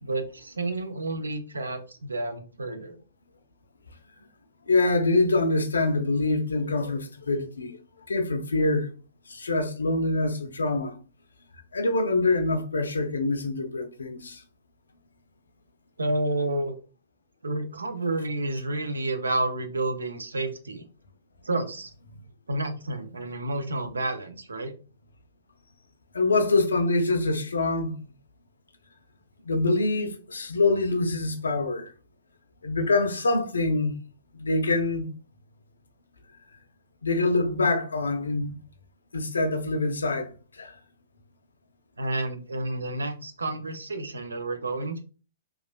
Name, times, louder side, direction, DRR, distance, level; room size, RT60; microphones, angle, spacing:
voice 1, 0.0-3.0 16.0-16.8 17.4-20.8 21.4-21.9 22.5-24.7 42.0-45.0, right 2 dB, 75° right, 0.5 m, -30 dB
voice 2, 4.7-7.8 8.1-8.9 9.3-11.0 11.7-14.4 26.1-28.0 29.4-31.9 32.6-33.9 34.3-35.1 37.0-38.5 39.1-40.7, left 2 dB, 70° left, 0.5 m, -25 dB
3.0 x 2.3 x 2.2 m
figure-of-eight pair, 115°, 0 cm